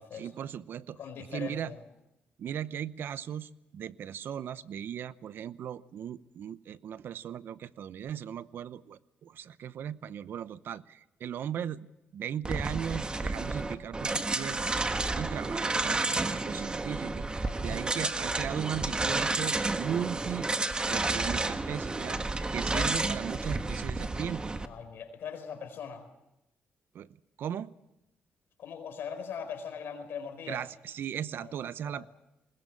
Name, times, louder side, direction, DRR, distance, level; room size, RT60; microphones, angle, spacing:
voice 1, 0.1-1.0 1.3-1.7 2.4-11.9 12.1-14.8 15.2-17.3 17.6-20.5 20.9-22.2 22.5-24.4 26.9-27.1 27.4-27.7 30.5-32.0, right 9 dB, 70° right, 16 dB, 0.8 m, -37 dB
voice 2, 1.0-1.8 17.4-17.8 22.7-22.9 24.6-26.1 28.6-30.6 31.4-31.5 31.9-32.1, left 7 dB, 75° left, 8 dB, 4.4 m, -40 dB
sound 1, 12.4-24.7, right 3 dB, 25° right, 1.5 m, -31 dB
20.5 x 20.5 x 8.6 m, 0.90 s
cardioid pair, 90°, 4 cm